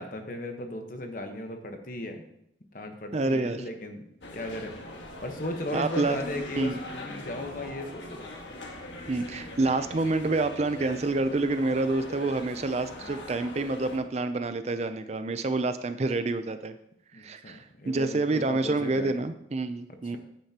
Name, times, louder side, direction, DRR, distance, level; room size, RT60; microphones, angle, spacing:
voice 1, 0.0-2.2 2.7-4.0 4.3-4.8 5.2-8.3 17.1-19.1 20.0-20.2, left 1 dB, 45° left, 5 dB, 1.1 m, -36 dB
voice 2, 3.1-3.6 5.7-6.2 6.6-6.8 9.1-16.7 17.1-20.2, right 2 dB, 35° right, 10 dB, 0.4 m, -28 dB
sound 1, 4.2-14.0, left 1 dB, 85° left, 1.5 m, -41 dB
9.9 x 9.2 x 2.9 m, 0.76 s
head